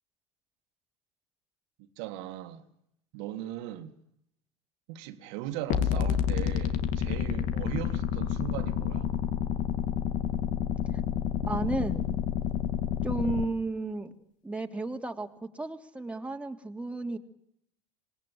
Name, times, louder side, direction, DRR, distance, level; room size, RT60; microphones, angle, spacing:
voice 1, 2.0-2.6 3.1-3.9 4.9-9.1, right 12 dB, 65° right, 2.2 m, -38 dB
sound 1, 5.7-13.5, left 9 dB, 55° left, 2.6 m, -29 dB
voice 2, 11.4-12.2 13.0-14.1 14.4-17.2, right 2 dB, 10° right, 2.9 m, -33 dB
26.5 x 20.5 x 7.7 m
hypercardioid pair, 80°, 16 cm